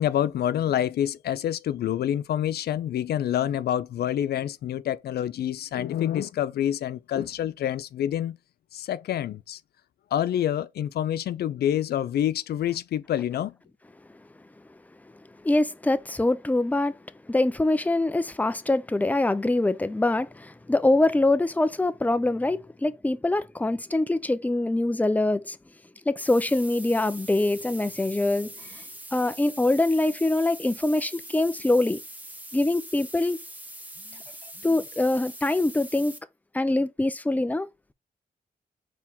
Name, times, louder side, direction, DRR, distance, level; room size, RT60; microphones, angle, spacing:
voice 1, 0.0-8.4 8.7-9.6 10.1-13.5, left 10 dB, 75° left, 0.4 m, -27 dB
voice 2, 15.4-17.0 17.3-25.6 26.1-28.8 29.1-32.0 32.5-33.4 34.6-36.2 36.5-37.7, left 2 dB, 10° left, 0.5 m, -24 dB
sound 1, 26.2-36.2, right 1 dB, 10° right, 1.2 m, -43 dB
4.6 x 2.9 x 3.5 m
supercardioid pair, 50°, 17 cm